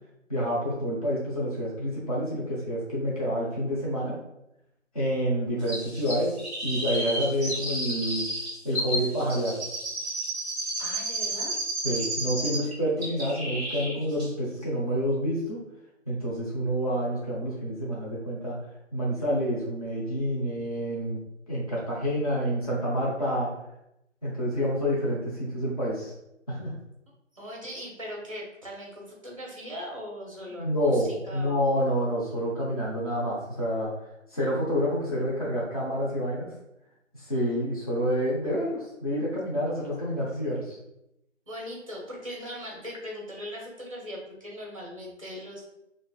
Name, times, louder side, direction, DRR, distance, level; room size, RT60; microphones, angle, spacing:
voice 1, 0.3-4.2 4.9-6.3 6.6-8.2 8.6-9.6 11.8-15.6 16.1-18.6 18.9-21.2 21.5-23.5 24.2-26.1 26.5-26.7 30.5-33.9 34.3-36.5 37.1-40.8, equal, 30° left, -6 dB, 0.7 m, -28 dB
Chirp tweet, 5.7-12.7 13.0-13.9 14.2-14.3, right 1 dB, 15° left, 1.4 m, -32 dB
voice 2, 10.8-11.6 27.3-31.8 41.5-45.7, equal, 25° right, -2 dB, 0.6 m, -39 dB
4.1 x 2.5 x 2.4 m, 0.84 s
figure-of-eight pair, 160°, 38 cm